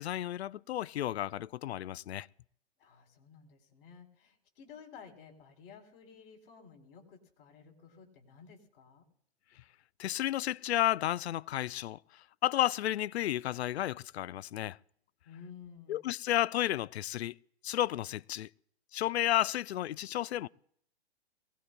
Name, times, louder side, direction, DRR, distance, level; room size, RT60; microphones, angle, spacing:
voice 1, 0.0-2.3 10.0-12.0 12.4-14.8 15.9-17.4 17.6-18.5 18.9-20.5, left 13 dB, 70° left, 0.5 m, -32 dB
voice 2, 2.8-9.0 15.2-16.0, left 6 dB, 55° left, 3.6 m, -53 dB
23.5 x 17.5 x 2.2 m
hypercardioid pair, 125°, 33 cm